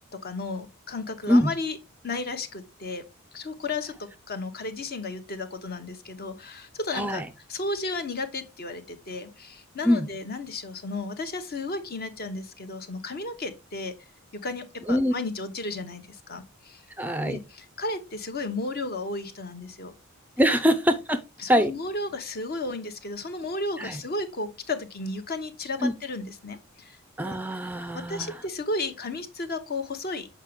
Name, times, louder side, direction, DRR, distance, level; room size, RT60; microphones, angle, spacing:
voice 1, 0.2-1.8 2.0-3.0 3.3-7.2 7.5-14.0 14.3-16.8 17.2-19.9 20.4-20.6 21.4-27.0 27.2-27.4 27.9-30.3, left 2 dB, 45° left, 0.9 m, -33 dB
voice 2, 6.9-7.3 9.8-10.1 14.9-15.1 17.0-17.4 20.4-21.2 21.5-21.7 23.8-24.0 25.8-25.9 27.2-28.4, equal, 10° right, 0.4 m, -23 dB
7.3 x 4.7 x 3.4 m
head